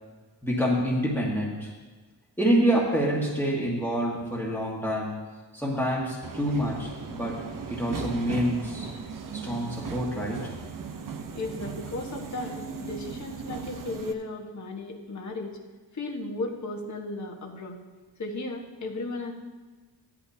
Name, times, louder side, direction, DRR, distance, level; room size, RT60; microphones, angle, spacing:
voice 1, 0.4-1.7 2.4-5.2 5.5-7.4 7.7-8.9 9.3-10.5, equal, 5° left, -5 dB, 1.6 m, -27 dB
Subway metro underground, 6.2-14.1, right 5 dB, 50° right, 0.8 m, -37 dB
voice 2, 11.4-15.6 15.9-17.8 18.2-19.3, left 2 dB, 40° left, 0 dB, 1.4 m, -35 dB
16.0 x 11.0 x 2.8 m, 1.4 s
wide cardioid pair, 160°, 43 cm